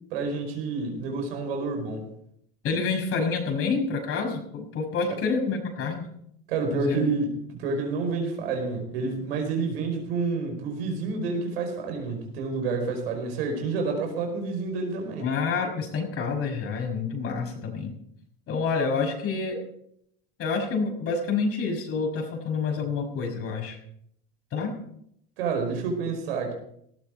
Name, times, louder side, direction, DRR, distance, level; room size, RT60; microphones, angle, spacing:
voice 1, 0.1-2.1 5.1-5.2 6.5-15.3 25.4-26.5, right 4 dB, 85° right, 3 dB, 5.0 m, -29 dB
voice 2, 2.6-6.1 6.7-7.0 15.2-17.9 18.5-19.6 20.4-23.8 24.5-24.7, left 4 dB, 50° left, 3 dB, 5.9 m, -28 dB
18.5 x 13.5 x 4.7 m, 0.72 s
supercardioid pair, 95°, 29 cm